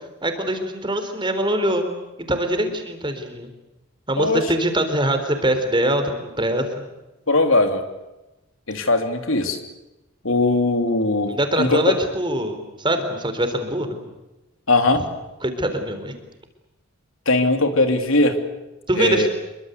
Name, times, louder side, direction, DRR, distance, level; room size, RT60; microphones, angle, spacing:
voice 1, 0.2-1.9 2.3-3.5 4.1-6.6 11.3-14.0 15.4-16.1 18.9-19.3, right 1 dB, 25° right, 7 dB, 4.0 m, -23 dB
voice 2, 7.3-7.9 8.7-9.6 10.2-11.3 11.6-11.9 14.7-15.0 17.3-18.4 19.0-19.3, left 2 dB, 75° left, 6 dB, 3.2 m, -19 dB
27.0 x 23.5 x 8.1 m, 1.0 s
head